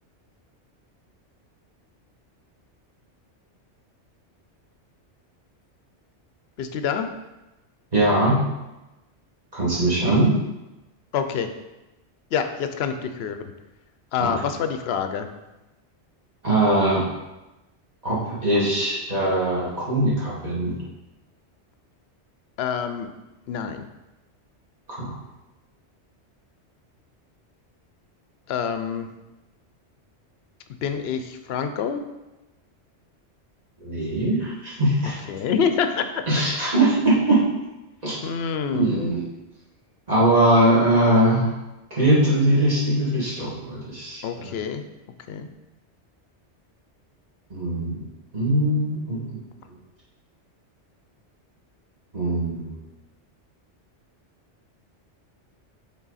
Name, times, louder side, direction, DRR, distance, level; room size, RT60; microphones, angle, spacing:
voice 1, 6.6-7.1 11.1-11.5 12.3-13.5 14.1-15.3 22.6-23.1 23.5-23.9 28.5-29.1 30.7-32.0 35.3-36.0 38.2-39.1 44.2-44.8 45.3-45.5, left 7 dB, 65° left, 8 dB, 0.8 m, -26 dB
voice 2, 7.9-8.4 9.5-10.3 14.2-14.3 16.4-17.0 18.0-20.7 24.9-25.1 33.8-35.2 36.3-37.4 38.0-38.1 38.7-39.2 40.1-41.5 41.9-44.5 47.5-48.0 48.3-49.4 52.1-52.7, right 1 dB, 35° right, -8 dB, 2.1 m, -21 dB
6.1 x 4.0 x 4.1 m, 1.0 s
omnidirectional pair, 1.2 m